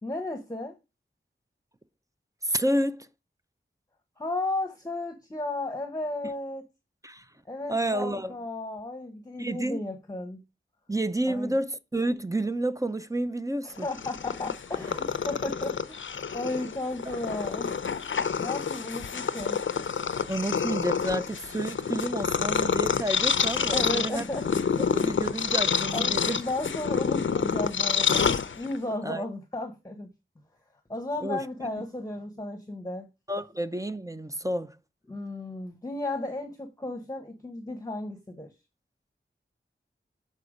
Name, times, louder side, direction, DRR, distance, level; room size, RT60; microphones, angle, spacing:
voice 1, 0.0-0.8 4.2-6.6 7.5-10.4 11.2-11.5 13.6-17.8 18.4-19.6 23.7-24.5 25.9-30.1 30.9-33.1 35.1-38.5, left 2 dB, 15° left, 1.0 m, -34 dB
voice 2, 2.4-3.1 7.0-7.3 7.7-8.3 9.4-9.8 10.9-13.9 20.3-24.2 24.9-26.4 29.0-29.2 31.2-31.4 33.3-34.8, right 1 dB, 15° right, 0.5 m, -30 dB
Purr, 13.8-28.9, left 6 dB, 70° left, 0.5 m, -28 dB
6.7 x 4.3 x 4.9 m
wide cardioid pair, 70°, 21 cm